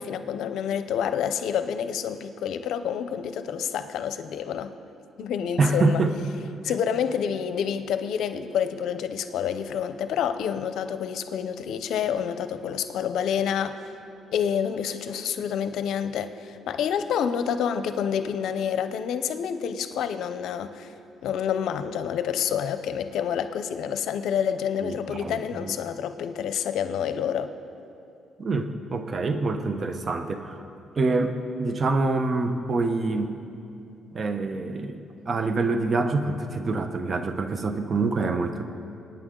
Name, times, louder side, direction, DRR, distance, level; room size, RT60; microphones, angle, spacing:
voice 1, 0.0-4.7 5.2-6.0 6.6-13.8 14.3-20.9 21.2-27.5, left 8 dB, 80° left, 10 dB, 0.7 m, -28 dB
voice 2, 5.6-6.1 24.8-25.7 28.4-30.6 31.0-33.3 34.1-35.0 35.3-38.6, right 3 dB, 40° right, 8 dB, 1.0 m, -26 dB
24.0 x 9.3 x 3.9 m, 2.6 s
cardioid pair, 90°, 0 cm